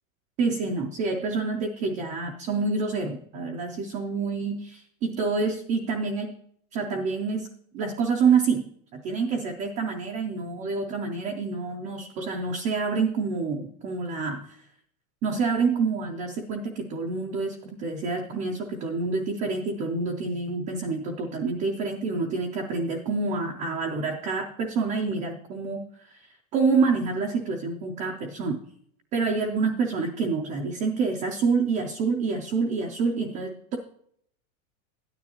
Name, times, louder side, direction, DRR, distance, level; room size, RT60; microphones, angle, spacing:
voice 1, 0.4-6.3 6.7-7.5 7.7-14.6 15.2-28.6 29.1-33.8, right 4 dB, 20° right, 1 dB, 0.3 m, -27 dB
13.0 x 9.5 x 2.8 m, 0.66 s
supercardioid pair, 155°, 41 cm